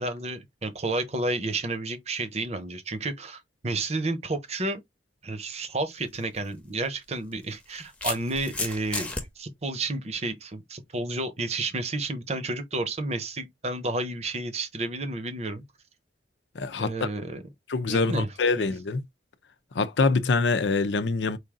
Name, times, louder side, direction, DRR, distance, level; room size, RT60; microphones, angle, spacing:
voice 1, 0.0-4.8 5.2-9.1 9.4-15.6 16.8-17.4 17.9-18.3 18.6-18.7, right 2 dB, 40° right, 0.9 m, -31 dB
sound 1, 6.1-6.2 7.3-9.2, left 2 dB, 5° left, 0.8 m, -33 dB
voice 2, 16.5-17.1 17.7-19.0 19.7-21.4, left 3 dB, 85° left, 0.6 m, -25 dB
4.9 x 2.6 x 3.7 m
head